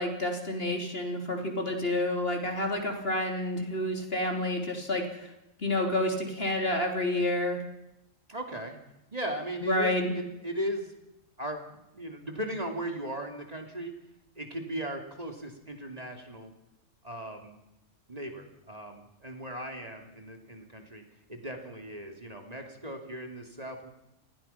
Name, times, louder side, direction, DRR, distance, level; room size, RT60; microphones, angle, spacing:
voice 1, 0.0-5.3 5.6-7.6 9.6-10.1, left 1 dB, 50° left, 3 dB, 3.9 m, -29 dB
voice 2, 8.3-8.8 9.1-10.9 11.4-13.9 14.4-16.5 17.0-17.6 18.1-21.0 21.3-23.9, right 1 dB, 30° right, 3 dB, 3.0 m, -37 dB
29.5 x 20.0 x 5.8 m, 0.89 s
omnidirectional pair, 1.3 m